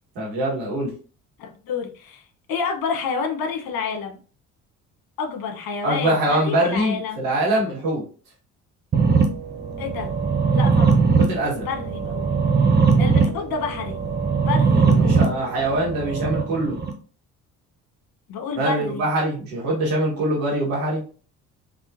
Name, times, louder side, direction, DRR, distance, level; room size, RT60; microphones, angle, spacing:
voice 1, 0.1-0.9 5.8-8.0 11.2-11.7 14.9-16.7 18.6-21.0, right 1 dB, 75° right, -4 dB, 1.7 m, -23 dB
voice 2, 1.4-2.2 2.5-4.2 5.2-7.2 9.8-10.1 10.5-11.0 11.6-12.4 13.0-14.0 14.4-15.2 18.3-19.0, left 5 dB, 55° left, 3 dB, 1.1 m, -29 dB
sound 1, 8.9-16.9, right 5 dB, 25° right, 0.8 m, -20 dB
3.5 x 2.8 x 2.6 m, 0.38 s
hypercardioid pair, 55°, 43 cm